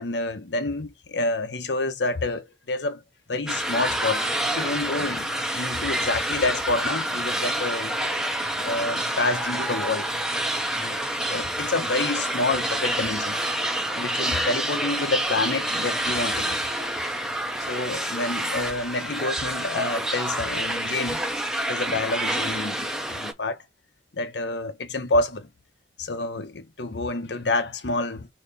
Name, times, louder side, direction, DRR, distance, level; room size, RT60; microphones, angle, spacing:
voice 1, 0.0-3.0 3.3-8.0 8.6-10.1 10.8-11.0 11.3-13.4 14.0-16.6 17.6-21.2 21.7-23.6 24.1-25.5 26.0-28.3, left 2 dB, 75° left, 0.9 m, -28 dB
sound 1, 3.5-23.3, right 1 dB, 5° right, 0.6 m, -28 dB
3.4 x 3.0 x 3.8 m
head